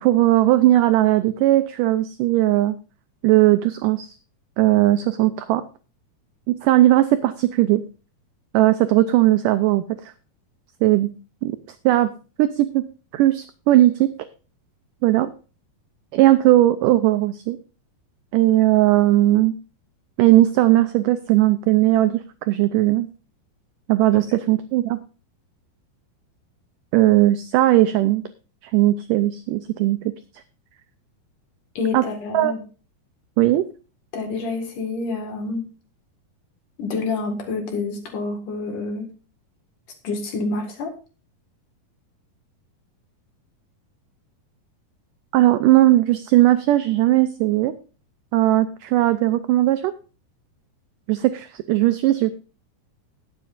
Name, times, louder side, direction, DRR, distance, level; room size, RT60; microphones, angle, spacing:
voice 1, 0.0-2.8 3.2-4.1 4.6-5.6 6.5-7.8 8.5-10.1 10.8-11.1 11.4-11.5 11.9-12.1 12.4-12.8 13.1-14.1 15.0-15.3 16.1-17.6 18.3-19.5 20.2-23.1 23.9-25.0 26.9-28.2 28.7-30.0 31.9-32.0 32.3-32.5 33.4-33.6 45.3-47.7 48.3-49.9 51.1-52.3, right 15 dB, 85° right, 10 dB, 1.9 m, -18 dB
voice 2, 31.7-32.6 34.1-35.6 36.8-39.1 40.0-40.9, left 3 dB, 60° left, 3 dB, 3.2 m, -27 dB
20.0 x 7.4 x 2.6 m, 0.35 s
omnidirectional pair, 4.4 m